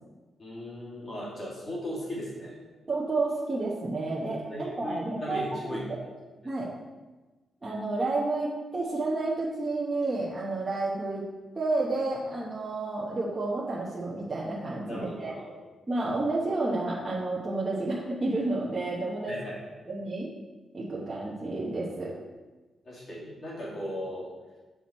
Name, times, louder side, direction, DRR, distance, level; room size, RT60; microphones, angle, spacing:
voice 1, 0.4-2.5 4.5-6.2 6.4-6.5 14.9-15.6 19.3-19.7 22.8-24.3, equal, 35° left, -6 dB, 2.6 m, -37 dB
voice 2, 2.9-6.0 6.4-6.7 7.6-11.2 11.5-15.3 15.9-19.4 19.9-20.3 20.7-22.1, right 2 dB, 20° right, -6 dB, 1.0 m, -30 dB
7.1 x 6.0 x 4.3 m, 1.2 s
wide cardioid pair, 170°, 0 cm